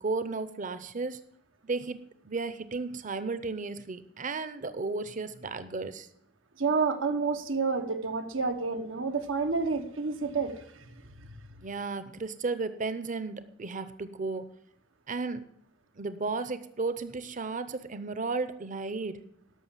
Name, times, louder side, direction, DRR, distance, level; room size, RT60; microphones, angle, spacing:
voice 1, 0.0-1.2 1.6-2.0 2.2-6.1 11.6-14.5 15.1-15.4 16.0-19.2, right 3 dB, 40° right, 12 dB, 0.7 m, -34 dB
voice 2, 6.6-10.9, right 4 dB, 90° right, 7 dB, 1.1 m, -29 dB
12.5 x 6.1 x 7.4 m, 0.71 s
head